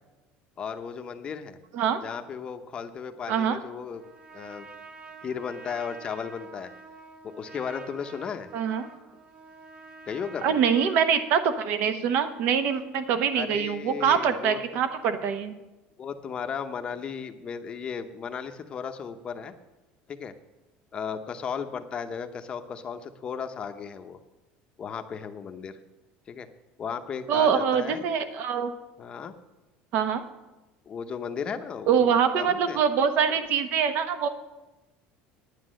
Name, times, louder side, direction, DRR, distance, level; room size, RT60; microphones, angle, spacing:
voice 1, 0.6-1.6 2.0-4.0 4.3-4.7 5.2-6.7 7.2-8.5 10.1-10.6 13.3-14.6 16.0-19.5 20.1-20.3 20.9-24.2 24.8-25.7 26.3-26.5 26.8-28.0 29.0-29.3 30.9-32.8, left 6 dB, 25° left, 8 dB, 0.7 m, -35 dB
voice 2, 3.3-3.6 8.5-8.9 10.4-15.5 27.3-28.8 29.9-30.2 31.9-34.3, right 7 dB, 55° right, 10 dB, 1.0 m, -24 dB
Trumpet, 3.9-11.6, right 3 dB, 25° right, 1.1 m, -47 dB
9.5 x 9.5 x 6.3 m, 1.1 s
cardioid pair, 160°, 4 cm